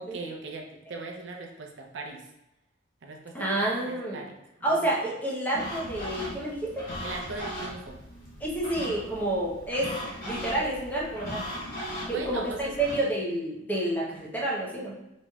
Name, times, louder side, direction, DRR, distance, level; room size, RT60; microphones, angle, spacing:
voice 1, 0.0-2.3 3.0-4.9 7.0-8.0 12.1-13.0, right 3 dB, 70° right, 1 dB, 0.5 m, -40 dB
voice 2, 3.3-4.2 4.6-6.8 8.4-11.4 12.1-14.9, right 1 dB, 10° left, -4 dB, 0.7 m, -29 dB
sound 1, 5.5-13.0, equal, 50° left, 1.0 m, -38 dB
4.2 x 3.0 x 2.3 m, 0.91 s
head